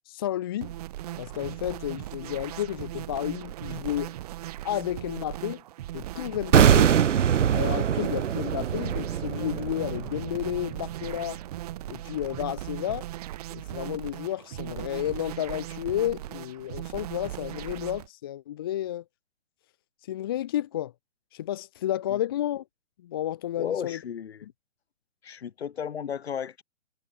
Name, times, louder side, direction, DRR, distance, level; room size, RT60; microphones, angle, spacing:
voice 1, 0.1-0.7 1.2-4.1 4.6-5.6 5.9-6.9 7.5-11.4 11.9-13.1 13.5-19.0 20.0-20.9 21.3-22.6 23.0-24.0 24.4-24.5, left 12 dB, 20° left, 0.7 m, -31 dB
sound 1, 0.6-18.1, right 14 dB, 30° right, 2.5 m, -38 dB
sound 2, 6.5-11.5 11.8-12.0, right 9 dB, 70° right, 0.8 m, -23 dB
voice 2, 23.6-24.5 25.2-26.6, left 8 dB, 55° left, 3.5 m, -34 dB
hypercardioid pair, 155°, 38 cm